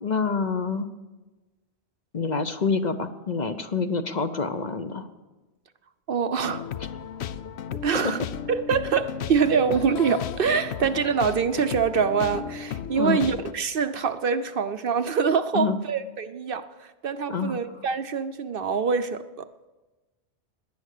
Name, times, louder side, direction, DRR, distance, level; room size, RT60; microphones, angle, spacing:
voice 1, 0.0-0.9 2.1-5.1 12.9-13.2 15.5-15.8 17.3-17.5, left 4 dB, 45° left, 8 dB, 0.8 m, -27 dB
voice 2, 6.1-6.7 7.8-8.2 8.5-19.5, right 6 dB, 60° right, 10 dB, 0.8 m, -25 dB
sound 1, 6.4-13.5, left 8 dB, 70° left, 0.9 m, -34 dB
18.0 x 11.0 x 6.6 m, 1.2 s
omnidirectional pair, 1.2 m